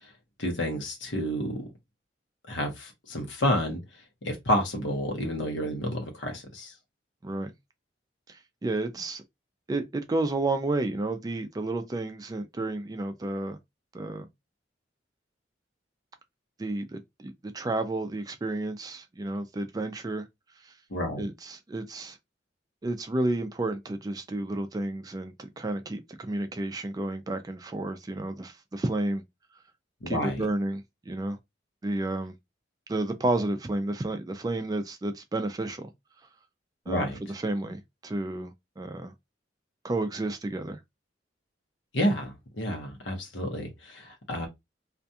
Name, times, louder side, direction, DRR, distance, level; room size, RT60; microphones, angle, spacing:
voice 1, 0.4-1.6 2.5-3.8 4.2-6.7 20.9-21.3 30.0-30.4 36.9-37.2 41.9-44.5, equal, 75° left, 0.9 m, -30 dB
voice 2, 8.3-9.2 9.7-13.6 13.9-14.3 16.6-20.3 20.7-20.8 21.2-22.2 22.8-29.2 30.1-31.4 31.8-32.3 32.9-35.9 36.9-39.1 39.8-40.8, right 2 dB, 20° right, 0.3 m, -31 dB
2.4 x 2.3 x 2.7 m
head